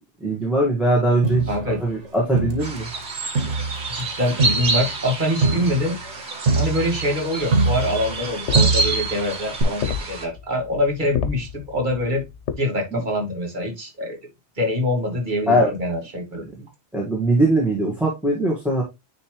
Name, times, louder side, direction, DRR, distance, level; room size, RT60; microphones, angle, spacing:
voice 1, 0.2-2.9 12.9-13.0 15.5-15.7 16.6-16.7 16.9-18.8, right 1 dB, ahead, -3 dB, 1.6 m, -21 dB
Crowd, 1.2-3.0 3.4-8.3 8.5-9.2 9.6-9.7, right 3 dB, 80° right, 1.7 m, -24 dB
voice 2, 1.5-1.8 3.9-6.0 6.6-12.2 12.6-14.2 14.6-16.4, left 1 dB, 45° right, 2 dB, 2.0 m, -24 dB
sound 1, 2.6-10.3, right 3 dB, 65° right, 1.7 m, -28 dB
Footsteps Concrete Slow Male Heavy, 7.4-12.5, left 7 dB, 75° left, 1.1 m, -31 dB
9.5 x 3.4 x 3.1 m, 0.22 s
omnidirectional pair, 1.2 m